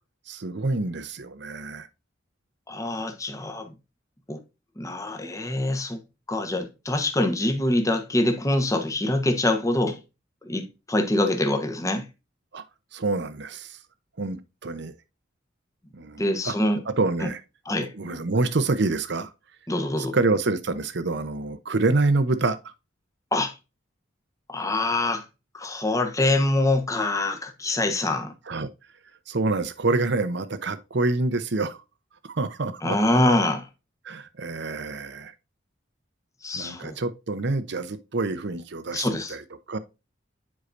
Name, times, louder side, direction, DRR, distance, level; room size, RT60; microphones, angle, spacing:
voice 1, 0.3-1.9 12.5-12.6 12.9-13.8 14.2-14.9 15.9-16.5 16.9-17.4 17.8-19.3 20.0-22.7 28.5-28.7 29.3-31.8 32.2-33.0 34.0-35.3 36.5-39.4 39.7-39.8, right 3 dB, 60° right, 0.8 m, -27 dB
voice 2, 2.7-3.7 4.3-4.4 4.8-6.0 6.3-10.0 10.4-12.1 16.2-16.8 17.2-17.3 17.7-17.9 19.7-20.1 23.3-23.5 24.5-25.2 25.5-28.3 32.8-33.7 36.4-37.0 38.9-39.4, left 1 dB, 15° left, 1.0 m, -25 dB
9.6 x 4.8 x 2.5 m
head